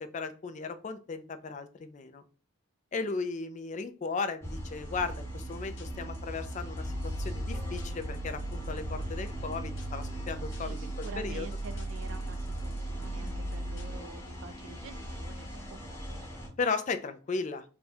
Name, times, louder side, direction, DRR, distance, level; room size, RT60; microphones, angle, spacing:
voice 1, 0.1-2.2 2.9-6.9 7.2-10.8 11.2-11.5 16.6-17.6, left 4 dB, 35° left, 8 dB, 0.3 m, -36 dB
sound 1, 4.4-16.5, equal, 10° left, 0.8 m, -41 dB
sound 2, 4.8-14.0, right 2 dB, 60° left, 0.8 m, -38 dB
voice 2, 10.3-16.4, right 4 dB, 65° right, 11 dB, 0.4 m, -48 dB
3.5 x 2.2 x 4.2 m, 0.36 s
head